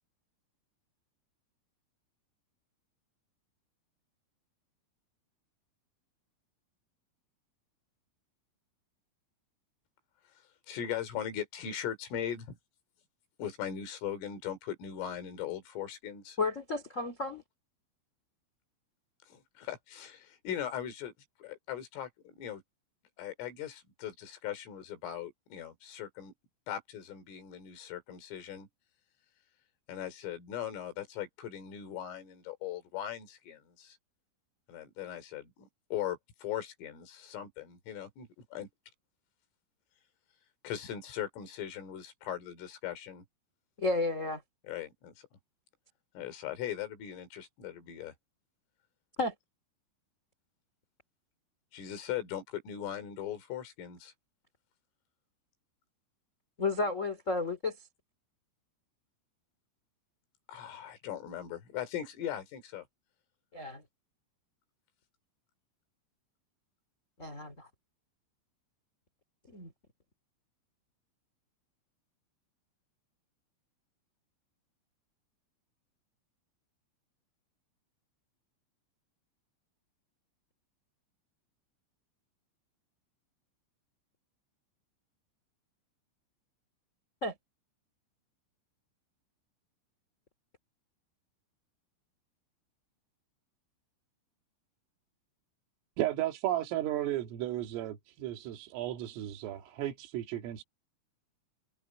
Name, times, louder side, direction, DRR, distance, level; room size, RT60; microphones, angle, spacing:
voice 1, 10.7-12.6 13.4-16.4 19.3-21.1 21.4-22.6 23.2-26.3 26.7-28.7 29.9-34.0 34.7-38.7 40.6-43.2 44.6-45.1 46.2-48.1 51.7-54.1 60.5-62.9, left 10 dB, 75° left, 6.1 m, -39 dB
voice 2, 16.4-17.4 43.8-44.4 49.2-49.3 56.6-57.8 63.5-63.8 67.2-67.7 69.5-69.7 87.2-87.3, left 3 dB, 20° left, 2.2 m, -32 dB
voice 3, 96.0-100.6, right 13 dB, 80° right, 4.8 m, -34 dB
omnidirectional pair, 5.9 m